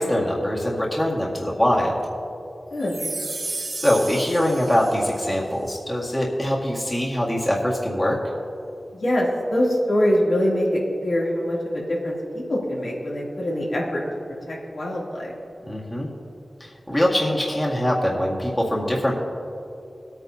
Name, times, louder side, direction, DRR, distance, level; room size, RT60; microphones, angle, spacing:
voice 1, 0.0-2.0 3.8-8.2 15.7-16.1 16.6-19.1, left 1 dB, 15° left, -4 dB, 1.9 m, -23 dB
voice 2, 2.7-3.1 8.9-12.2 12.5-14.0 14.5-15.3, equal, 80° left, -6 dB, 2.9 m, -24 dB
sound 1, 2.8-5.3, right 2 dB, 50° right, 0.9 m, -33 dB
19.5 x 9.1 x 2.8 m, 2.7 s
wide cardioid pair, 75°, 0 cm